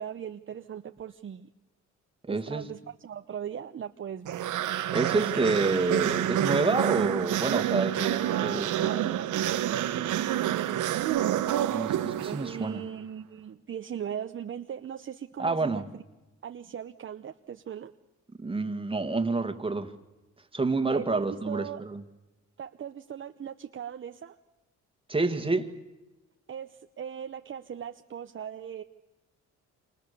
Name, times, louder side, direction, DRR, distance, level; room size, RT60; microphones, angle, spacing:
voice 1, 0.0-1.5 2.3-4.4 8.0-10.8 11.2-11.5 12.2-16.0 16.4-17.9 20.9-21.8 22.6-24.4 26.5-28.8, right 9 dB, 40° right, 7 dB, 0.9 m, -39 dB
voice 2, 2.3-2.6 4.9-9.0 11.7-12.8 15.4-15.8 18.4-19.9 20.5-22.0 25.1-25.7, right 3 dB, 15° right, 7 dB, 2.0 m, -28 dB
sound 1, 4.3-12.7, right 12 dB, 85° right, 1.2 m, -28 dB
27.0 x 27.0 x 6.9 m, 1.1 s
cardioid pair, 90°, 30 cm